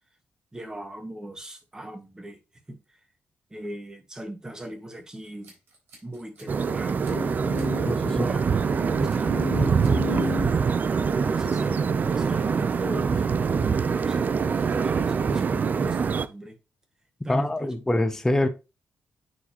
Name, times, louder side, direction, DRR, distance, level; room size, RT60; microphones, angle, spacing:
voice 1, 0.5-2.4 2.7-3.0 3.5-5.5 6.0-7.1 8.0-10.0 11.2-16.6 17.2-17.7, equal, 15° right, 1.7 m, -38 dB
Scissors, 5.2-6.7 7.0-7.7 8.1-8.3 9.1-9.5 9.8-10.3, right 3 dB, 75° right, 4.3 m, -54 dB
sound 1, 6.5-16.3, right 6 dB, 45° right, 0.5 m, -24 dB
sound 2, 7.1-14.5 15.1-15.6, left 7 dB, 70° left, 0.7 m, -38 dB
voice 2, 17.3-18.5, left 1 dB, 10° left, 0.8 m, -24 dB
9.7 x 4.0 x 3.0 m
cardioid pair, 85°, 4 cm